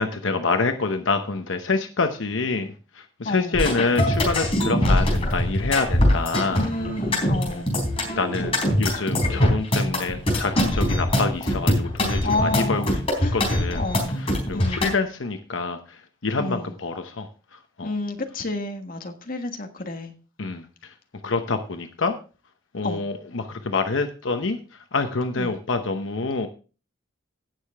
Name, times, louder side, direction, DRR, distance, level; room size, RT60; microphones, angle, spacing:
voice 1, 0.0-2.7 2.9-6.6 7.5-7.6 8.1-13.0 13.3-13.9 14.2-17.3 17.8-17.9 20.4-20.7 21.2-22.1 22.7-24.6 24.9-26.5, left 3 dB, 75° left, 7 dB, 0.9 m, -26 dB
voice 2, 3.2-3.7 6.5-7.7 12.2-12.9 13.2-13.3 13.7-14.2 14.5-14.9 16.4-16.7 17.8-20.1 22.8-23.0 25.4-25.6, left 2 dB, 45° left, 5 dB, 1.5 m, -30 dB
sound 1, 3.5-14.9, left 1 dB, 30° left, 4.0 m, -22 dB
17.5 x 6.7 x 3.5 m, 0.35 s
head